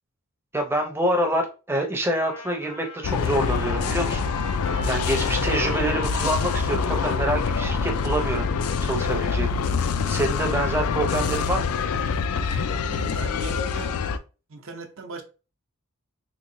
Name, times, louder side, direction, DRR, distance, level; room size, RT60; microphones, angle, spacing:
voice 1, 0.5-4.3 4.9-8.5 8.8-9.5 10.1-11.7, right 1 dB, 10° right, 0.5 m, -26 dB
Trumpet, 2.2-9.2, left 2 dB, 65° left, 0.9 m, -41 dB
sound 1, 3.0-14.2, left 5 dB, 85° left, 0.4 m, -25 dB
voice 2, 12.8-14.0 14.5-15.2, right 2 dB, 60° right, 0.6 m, -37 dB
3.4 x 3.0 x 2.6 m
head